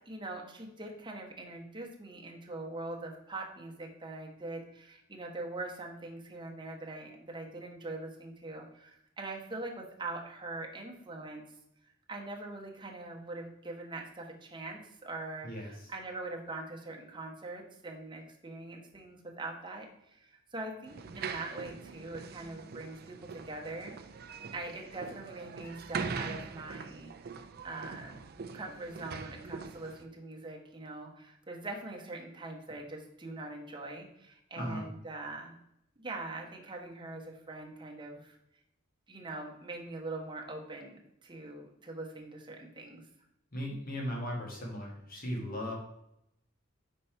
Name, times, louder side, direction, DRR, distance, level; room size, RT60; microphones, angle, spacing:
voice 1, 0.0-11.4 12.1-23.9 24.5-27.1 27.6-28.2 28.5-35.5 36.0-38.4 39.1-43.0, right 2 dB, 25° right, 0 dB, 1.1 m, -42 dB
voice 2, 15.4-15.9 34.6-34.9 43.5-45.7, equal, 45° left, -1 dB, 1.6 m, -37 dB
sound 1, 20.9-30.0, right 5 dB, 50° right, 0.4 m, -42 dB
5.4 x 4.2 x 4.4 m, 0.78 s
head